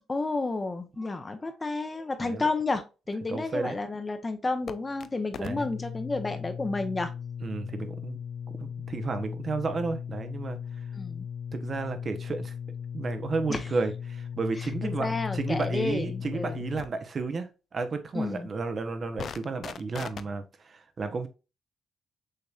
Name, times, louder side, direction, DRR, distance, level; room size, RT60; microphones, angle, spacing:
voice 1, 0.0-7.1 11.0-11.3 13.5-13.7 14.8-16.6 18.1-18.5, left 3 dB, 25° left, 0.8 m, -31 dB
voice 2, 3.3-3.7 5.4-5.7 7.4-8.2 8.5-10.6 11.5-12.5 12.9-21.3, right 4 dB, 40° right, 0.8 m, -32 dB
sound 1, 4.7-5.1 5.3-16.9 19.2-20.2, left 7 dB, 55° left, 0.4 m, -37 dB
6.5 x 3.0 x 2.4 m
cardioid pair, 90°, 0 cm